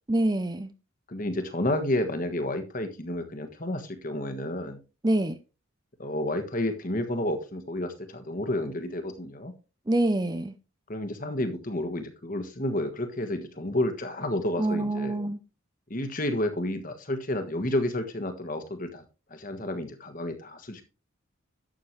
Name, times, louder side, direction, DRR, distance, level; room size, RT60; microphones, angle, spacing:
voice 1, 0.1-0.7 5.0-5.4 9.9-10.5 14.6-15.4, right 1 dB, 20° right, 0.5 m, -26 dB
voice 2, 1.1-4.8 6.0-9.5 10.9-15.1 15.9-19.0 19.3-20.8, left 1 dB, 40° left, 1.4 m, -30 dB
11.5 x 7.6 x 3.2 m
head